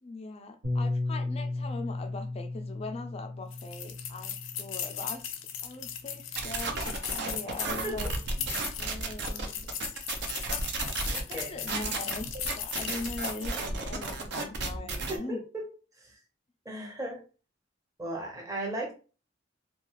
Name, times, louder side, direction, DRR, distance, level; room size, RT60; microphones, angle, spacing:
voice 1, 0.0-8.1 8.7-9.7 11.1-15.4, left 3 dB, 30° left, 0.3 m, -41 dB
Bass guitar, 0.6-5.1 5.9-6.9, left 2 dB, 85° right, 1.4 m, -35 dB
sound 1, 3.5-13.6, left 9 dB, 90° left, 0.5 m, -38 dB
sound 2, 6.4-15.2, right 3 dB, 60° right, 0.5 m, -33 dB
voice 2, 7.7-8.0 11.3-11.6 15.1-15.7 16.0-16.2 16.6-17.2 18.0-18.9, right 1 dB, 15° right, 0.7 m, -36 dB
2.3 x 2.3 x 3.0 m
head